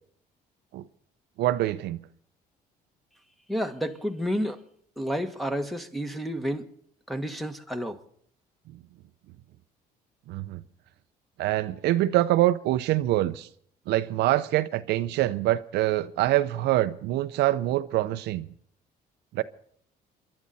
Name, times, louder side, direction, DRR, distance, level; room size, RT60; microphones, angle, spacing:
voice 1, 1.4-2.0 10.3-10.6 11.4-13.5 13.9-18.5 19.3-19.4, right 15 dB, 80° right, 0.7 m, -25 dB
voice 2, 3.5-4.6 5.0-6.7 7.1-8.0, equal, ahead, 1.5 m, -30 dB
27.0 x 11.5 x 4.2 m
cardioid pair, 110°, 17 cm